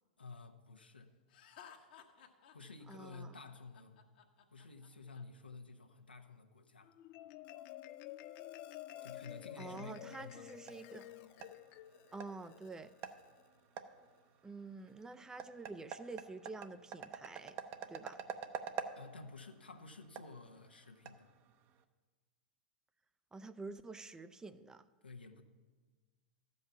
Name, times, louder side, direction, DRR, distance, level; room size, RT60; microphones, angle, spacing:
voice 1, 0.2-1.1 2.5-4.0 4.5-7.0 9.0-10.5 18.9-21.3 25.0-25.4, left 3 dB, 90° left, 4 dB, 1.0 m, -52 dB
Laughter, 1.3-5.2, left 8 dB, 65° left, 1.2 m, -58 dB
voice 2, 2.9-3.3 9.6-11.1 12.1-12.9 14.4-17.6 17.9-18.2 23.3-24.8, right 3 dB, 10° right, 12 dB, 0.5 m, -48 dB
Marimba xylophone, 6.9-13.5, left 14 dB, 45° left, 0.4 m, -51 dB
sound 1, 10.0-21.8, right 7 dB, 40° right, 0.8 m, -49 dB
13.5 x 5.4 x 7.0 m, 1.4 s
figure-of-eight pair, 100°, 5 cm